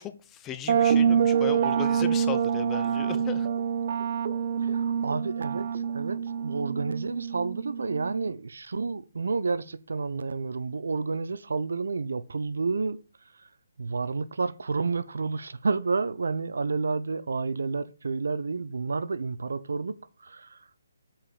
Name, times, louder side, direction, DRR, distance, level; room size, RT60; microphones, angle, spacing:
voice 1, 0.0-3.5, left 10 dB, 15° left, 0.8 m, -37 dB
sound 1, 0.7-8.3, right 8 dB, 45° right, 0.6 m, -26 dB
voice 2, 4.6-13.5 13.8-20.7, right 4 dB, 75° right, 0.8 m, -30 dB
7.3 x 5.1 x 7.3 m
hypercardioid pair, 150°, 0 cm